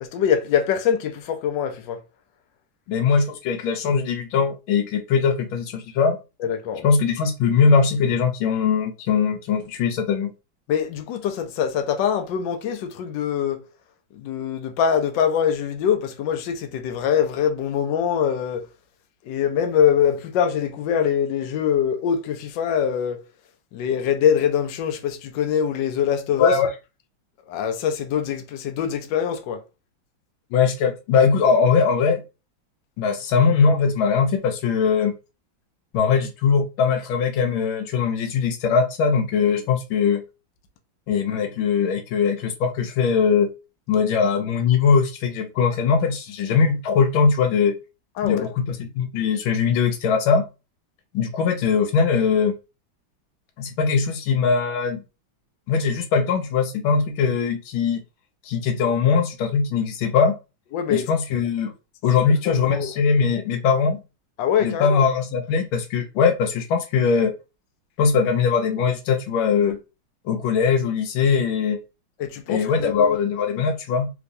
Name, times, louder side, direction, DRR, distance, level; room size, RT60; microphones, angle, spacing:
voice 1, 0.0-2.0 6.4-6.8 10.7-13.6 14.1-18.6 19.3-23.2 23.7-26.6 27.5-29.6 48.2-48.5 60.7-61.1 62.3-62.9 64.4-65.0 72.2-73.2, left 8 dB, 70° left, 1.3 m, -23 dB
voice 2, 2.9-6.2 6.8-10.3 26.4-26.7 30.5-32.2 33.0-35.1 35.9-40.2 41.1-43.5 43.9-47.7 48.2-50.5 51.1-52.6 53.6-55.0 55.7-58.0 58.5-60.4 60.9-61.7 62.0-64.0 64.6-67.3 68.0-69.8 70.3-71.8 72.5-74.1, left 5 dB, 85° left, 1.5 m, -21 dB
3.4 x 3.0 x 2.6 m
omnidirectional pair, 2.2 m